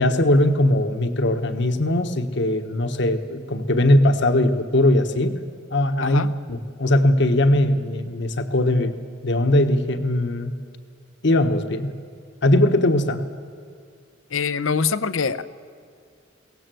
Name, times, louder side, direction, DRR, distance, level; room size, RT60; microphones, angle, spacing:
voice 1, 0.0-5.3 5.7-6.2 6.5-9.0 9.2-10.5 11.2-11.9 12.4-13.2, left 1 dB, 60° left, 7 dB, 1.3 m, -20 dB
voice 2, 6.0-6.3 14.3-15.4, left 5 dB, 85° left, 11 dB, 0.8 m, -24 dB
22.5 x 18.0 x 7.8 m, 2.2 s
head